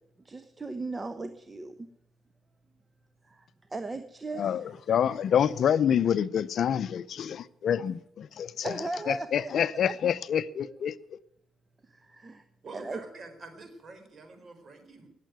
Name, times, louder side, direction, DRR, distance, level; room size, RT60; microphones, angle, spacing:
voice 1, 0.2-1.9 3.2-4.8 8.6-9.5 9.8-9.9 10.6-10.7 11.8-12.4 12.7-13.0, right 2 dB, 25° right, 1.0 m, -37 dB
voice 2, 4.4-8.8 9.1-11.2, left 9 dB, 60° left, 0.6 m, -27 dB
voice 3, 12.6-15.1, right 3 dB, 45° right, 4.2 m, -46 dB
18.5 x 7.6 x 9.4 m
cardioid pair, 90°, 0 cm